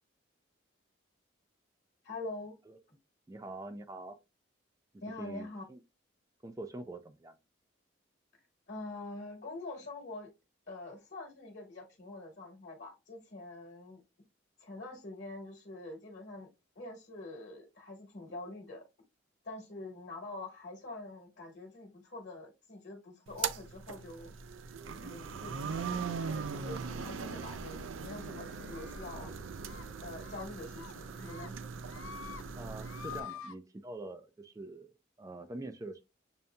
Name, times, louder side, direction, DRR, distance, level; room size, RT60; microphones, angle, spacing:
voice 1, 2.0-2.6 5.0-5.6 8.7-10.3 10.7-14.0 14.6-16.5 16.7-18.8 19.4-24.3 25.0-29.4 30.0-31.5, left 2 dB, 55° left, 1.1 m, -45 dB
voice 2, 3.3-4.2 4.9-5.8 6.4-7.4 32.6-36.0, right 2 dB, 15° right, 0.3 m, -45 dB
sound 1, 23.3-33.2, right 5 dB, 75° right, 0.5 m, -40 dB
sound 2, 28.7-29.3 29.7-29.9 30.2-30.4 30.8-31.5 31.8-32.4 32.7-33.5, left 8 dB, 80° left, 0.5 m, -47 dB
6.8 x 2.6 x 2.2 m
head